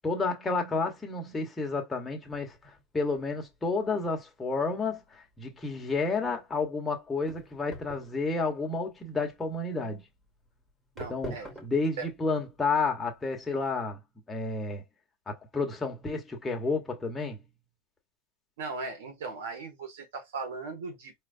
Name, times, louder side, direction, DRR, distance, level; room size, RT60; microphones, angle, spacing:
voice 1, 0.0-10.0 11.1-11.4 11.6-14.0 14.3-14.8 15.3-17.4, left 3 dB, 10° left, 1.1 m, -31 dB
sound 1, 2.2-13.7, right 2 dB, 10° right, 1.5 m, -48 dB
voice 2, 11.0-11.5 12.0-12.1 18.6-21.1, right 4 dB, 80° right, 1.9 m, -38 dB
4.5 x 3.2 x 2.6 m
supercardioid pair, 140°, 0 cm